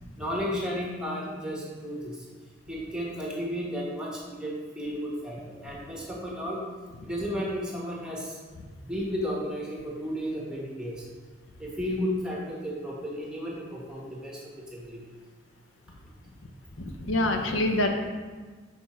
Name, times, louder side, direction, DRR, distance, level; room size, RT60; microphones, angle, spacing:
voice 1, 0.2-2.2 2.7-6.6 7.0-8.4 8.8-11.0 11.6-14.4 14.7-15.0, equal, 5° right, -4 dB, 1.3 m, -33 dB
voice 2, 16.8-17.9, left 1 dB, 85° left, 4 dB, 0.8 m, -26 dB
6.6 x 4.8 x 4.4 m, 1.4 s
head